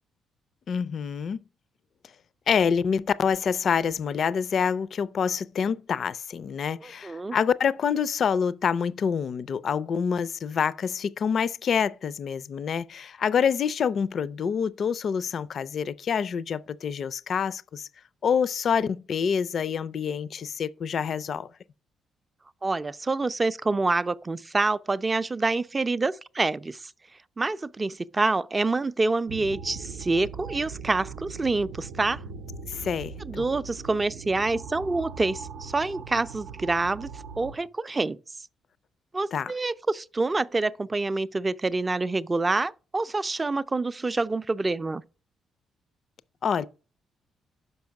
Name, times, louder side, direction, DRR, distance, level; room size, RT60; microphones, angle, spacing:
voice 1, 0.7-1.4 2.5-17.9 18.2-21.5 32.7-33.5 39.3-39.5 46.4-46.7, left 7 dB, 55° left, 0.4 m, -27 dB
voice 2, 6.8-7.4 22.6-26.9 27.4-32.2 33.3-37.1 37.4-38.2 39.1-45.0, right 3 dB, 25° right, 0.4 m, -27 dB
sound 1, 29.3-37.6, right 5 dB, 80° right, 0.5 m, -40 dB
5.6 x 5.3 x 5.8 m
cardioid pair, 90°, 0 cm